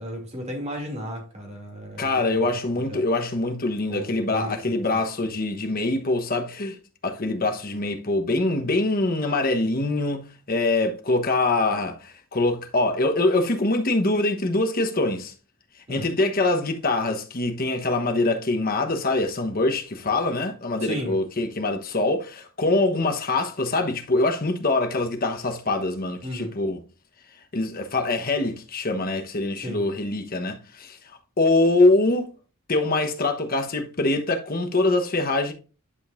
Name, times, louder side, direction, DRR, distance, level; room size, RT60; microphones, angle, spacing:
voice 1, 0.0-2.5 2.7-3.0 3.9-4.9 15.9-16.1 20.8-21.2 26.2-26.5 29.6-29.8, equal, 30° right, 2.6 m, -34 dB
voice 2, 2.0-6.8 7.0-15.3 15.9-26.8 27.5-31.0 31.4-32.3 32.7-35.5, left 2 dB, 45° left, 1.1 m, -24 dB
11.0 x 5.3 x 2.5 m
head